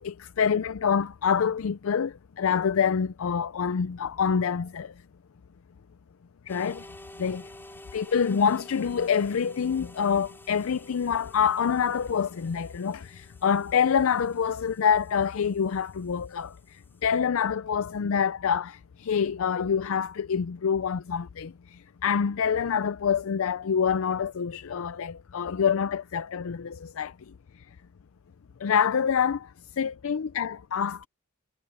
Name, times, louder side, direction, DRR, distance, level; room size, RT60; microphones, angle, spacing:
voice 1, 0.0-4.9 6.5-6.9 7.2-7.5 7.9-27.1 28.6-29.5 29.8-31.1, left 7 dB, 65° left, 0.4 m, -26 dB
sound 1, 6.5-17.2, left 1 dB, 10° left, 4.1 m, -51 dB
head